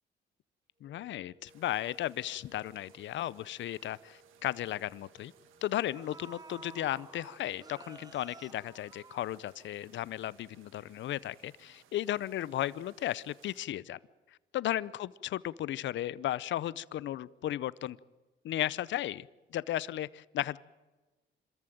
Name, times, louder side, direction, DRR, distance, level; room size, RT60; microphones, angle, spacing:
sound 1, 0.7-8.9, right 2 dB, 60° right, 7.9 m, -64 dB
voice 1, 0.8-5.3 5.6-14.0 14.5-18.0 18.4-19.3 19.5-20.6, left 13 dB, 70° left, 20 dB, 0.6 m, -35 dB
sound 2, 1.5-13.6, right 9 dB, 90° right, 1.7 m, -64 dB
sound 3, 4.2-4.4 5.4-5.5 5.9-9.8 10.2-10.3, right 4 dB, 20° right, 0.7 m, -52 dB
26.0 x 14.0 x 9.1 m, 1.2 s
cardioid pair, 90°, 20 cm